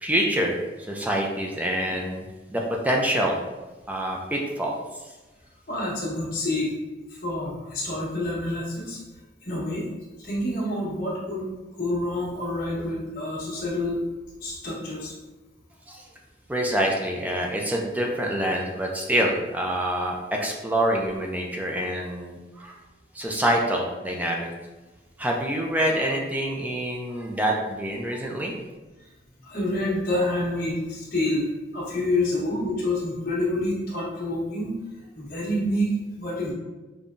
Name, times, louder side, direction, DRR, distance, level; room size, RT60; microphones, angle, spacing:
voice 1, 0.0-3.4 3.9-4.8 15.9-16.1 16.5-22.8 23.1-24.5 25.2-28.5, right 1 dB, 10° right, -1 dB, 0.4 m, -26 dB
voice 2, 5.7-6.7 7.1-9.0 9.4-9.9 10.2-11.5 11.8-14.0 14.4-15.1 29.4-34.7 35.1-36.5, left 1 dB, 50° left, -6 dB, 1.2 m, -28 dB
5.3 x 2.2 x 2.5 m, 1.2 s
head